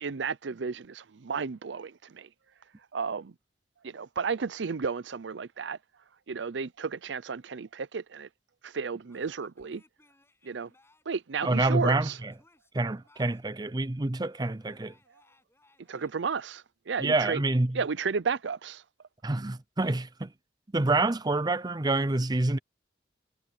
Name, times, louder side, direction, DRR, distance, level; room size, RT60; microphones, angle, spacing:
voice 1, 0.0-2.3 2.9-3.3 3.8-5.8 6.3-8.3 8.6-9.8 10.4-10.7 11.1-12.2 15.9-17.4 17.7-18.8, right 5 dB, 80° right, 0.6 m, -33 dB
Male speech man speaking / Yell / Laughter, 9.1-11.2 11.9-13.6 14.3-16.1, left 2 dB, 15° left, 7.1 m, -64 dB
voice 2, 11.4-12.3 12.7-14.9 17.0-17.8 19.2-20.3 20.7-22.6, right 2 dB, 25° right, 0.6 m, -27 dB
head